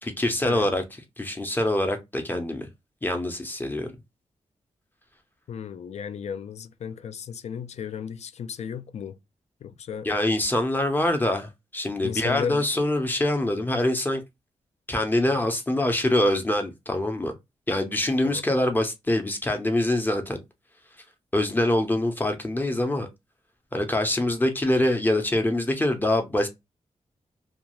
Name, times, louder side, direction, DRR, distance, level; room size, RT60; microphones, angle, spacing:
voice 1, 0.0-0.8 1.2-2.7 3.0-3.9 10.1-14.2 14.9-17.3 17.7-20.4 21.3-23.1 23.7-26.5, left 1 dB, 15° left, 0.6 m, -24 dB
voice 2, 5.5-9.2 9.6-10.1 12.0-12.8 18.2-18.4, left 7 dB, 65° left, 0.4 m, -34 dB
2.5 x 2.3 x 2.9 m
wide cardioid pair, 120°, 12 cm